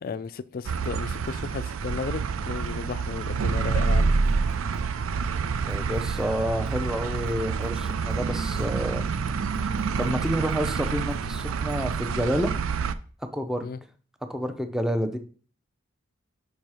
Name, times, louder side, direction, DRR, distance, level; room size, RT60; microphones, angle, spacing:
voice 1, 0.0-4.1 13.6-13.8, left 5 dB, 45° left, 0.3 m, -34 dB
sound 1, 0.6-12.9, right 5 dB, 90° right, 0.4 m, -27 dB
Drum kit, 4.3-4.8 5.2-5.3 5.6-6.8 7.1-7.3 7.6-8.7 9.1-9.2 9.4-10.6 11.0-11.9, left 1 dB, 45° right, 1.3 m, -47 dB
voice 2, 5.6-9.0 10.0-12.5 13.3-13.7 14.3-15.2, equal, 5° right, 0.5 m, -29 dB
5.5 x 4.5 x 4.8 m
head